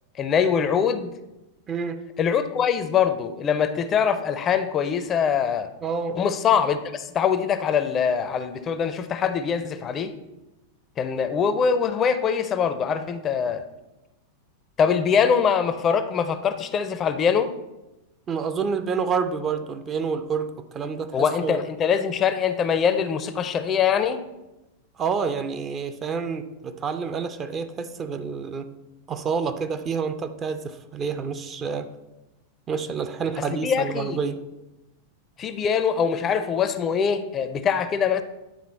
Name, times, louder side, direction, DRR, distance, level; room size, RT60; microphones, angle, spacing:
voice 1, 0.2-1.1 2.2-5.7 6.2-10.1 11.0-13.6 14.8-17.5 21.1-24.2 33.6-34.2 35.4-38.2, left 7 dB, 25° left, 11 dB, 0.5 m, -23 dB
voice 2, 1.7-2.0 5.8-6.2 18.3-21.6 25.0-28.7 29.1-31.9 32.7-34.4, right 5 dB, 25° right, 9 dB, 0.5 m, -28 dB
9.4 x 3.9 x 4.2 m, 0.97 s
figure-of-eight pair, 90°, 0 cm